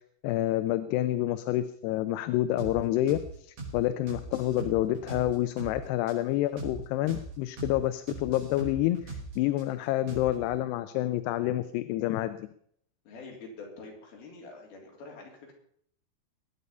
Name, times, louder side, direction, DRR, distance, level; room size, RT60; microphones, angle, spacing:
voice 1, 0.2-9.0 9.4-12.5, left 14 dB, 85° left, 12 dB, 2.8 m, -28 dB
sound 1, 2.6-2.8 3.1-3.3 3.6-3.8 4.1-5.8 6.1-6.2 6.6-6.8 7.1-7.3 7.6-7.8 8.1-9.6 10.1-10.5, right 2 dB, 50° right, 6.4 m, -40 dB
voice 2, 13.0-15.5, left 3 dB, 65° left, 0 dB, 5.1 m, -46 dB
21.5 x 9.6 x 5.5 m, 0.66 s
omnidirectional pair, 4.7 m